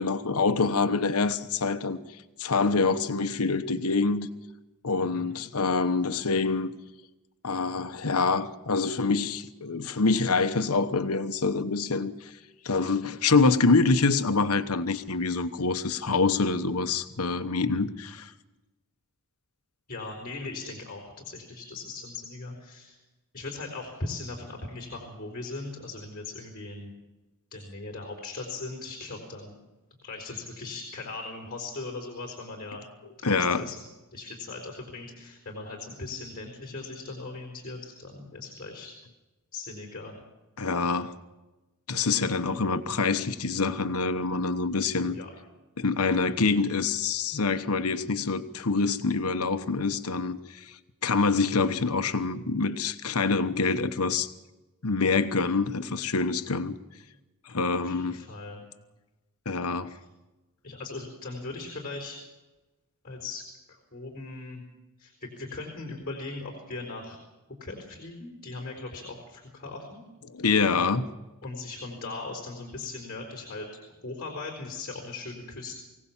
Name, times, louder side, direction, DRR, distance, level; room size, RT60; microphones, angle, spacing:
voice 1, 0.0-2.0 2.4-4.3 4.8-6.7 7.4-12.3 12.6-18.3 33.2-33.6 40.6-41.1 41.9-45.2 45.8-54.3 54.8-56.8 57.5-58.2 59.4-59.9 70.3-71.1, left 4 dB, 80° left, 1.1 m, -26 dB
voice 2, 5.0-5.3 19.9-23.0 23.3-26.9 27.5-29.6 30.0-32.8 33.2-33.8 34.1-38.9 39.5-40.2 45.0-45.3 57.8-58.6 59.9-60.0 60.6-62.2 63.0-64.6 65.0-67.2 67.6-70.0 71.4-73.7 74.0-75.7, left 3 dB, 40° left, 4.3 m, -39 dB
24.0 x 17.0 x 7.4 m
head